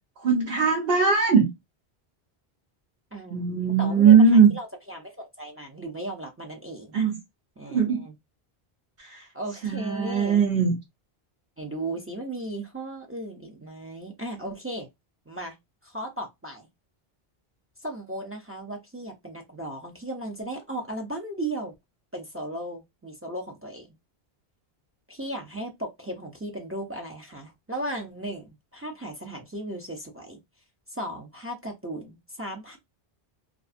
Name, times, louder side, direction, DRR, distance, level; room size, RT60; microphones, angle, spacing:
voice 1, 0.2-1.5 3.3-4.5 6.9-7.2 7.7-8.0 9.0-9.3 9.6-10.8, right 6 dB, 70° right, 0.9 m, -20 dB
voice 2, 3.1-6.9 7.6-8.1 9.3-10.4 11.6-14.9 15.3-15.6 15.8-16.7 17.8-21.7 22.1-23.9 25.1-30.4 30.9-32.8, right 1 dB, 20° right, 0.3 m, -36 dB
2.5 x 2.4 x 2.4 m
omnidirectional pair, 1.0 m